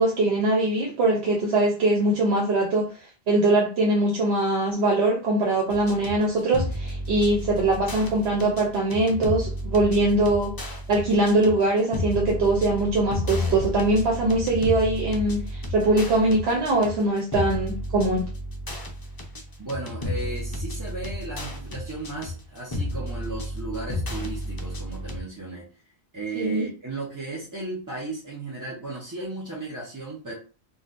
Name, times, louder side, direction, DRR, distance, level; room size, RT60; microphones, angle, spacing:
voice 1, 0.0-2.9 3.3-18.3 26.3-26.7, right 2 dB, 75° right, 0.9 m, -22 dB
sound 1, 5.7-25.2, left 1 dB, 35° left, 0.4 m, -32 dB
voice 2, 19.6-25.7 26.1-30.3, right 2 dB, 25° right, 0.5 m, -35 dB
3.9 x 2.1 x 2.5 m
omnidirectional pair, 1.1 m